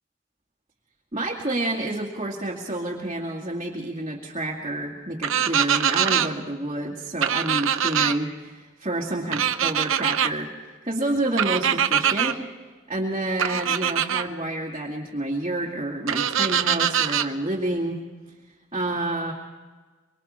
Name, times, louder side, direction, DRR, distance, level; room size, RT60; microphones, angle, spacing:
voice 1, 1.1-10.5 10.8-12.5 12.9-18.0 18.7-19.3, right 1 dB, 25° right, -4 dB, 2.2 m, -29 dB
sound 1, 5.2-6.3 7.2-8.1 9.3-10.3 11.4-12.3 13.4-14.2 16.1-17.3, right 9 dB, 65° right, 0.9 m, -23 dB
25.0 x 24.0 x 4.3 m, 1.4 s
head